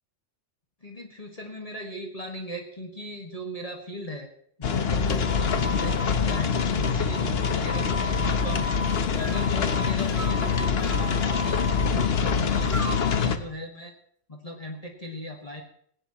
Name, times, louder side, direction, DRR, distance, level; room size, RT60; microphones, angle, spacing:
voice 1, 0.8-4.3 4.6-8.8 9.1-13.9 14.3-15.6, equal, 30° left, 1 dB, 1.7 m, -38 dB
sound 1, 4.6-13.4, left 6 dB, 55° left, 1.2 m, -25 dB
sound 2, 5.1-13.3, left 2 dB, 15° left, 1.1 m, -36 dB
18.5 x 17.5 x 3.0 m, 0.65 s
omnidirectional pair, 1.3 m